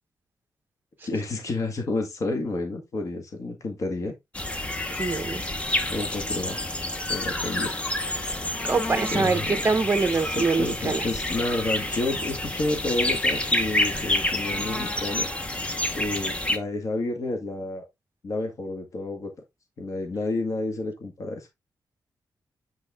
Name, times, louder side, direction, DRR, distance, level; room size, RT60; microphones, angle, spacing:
voice 1, 1.0-4.1 5.9-6.7 7.1-7.8 9.1-9.6 10.2-15.3 15.9-17.8 18.2-19.3 19.8-21.5, left 2 dB, 50° left, 1.8 m, -30 dB
sound 1, 4.3-16.6, left 1 dB, 15° left, 0.9 m, -28 dB
voice 2, 5.0-5.4 8.6-11.1, right 4 dB, 30° right, 0.9 m, -24 dB
8.6 x 4.7 x 3.6 m
wide cardioid pair, 170°, 7 cm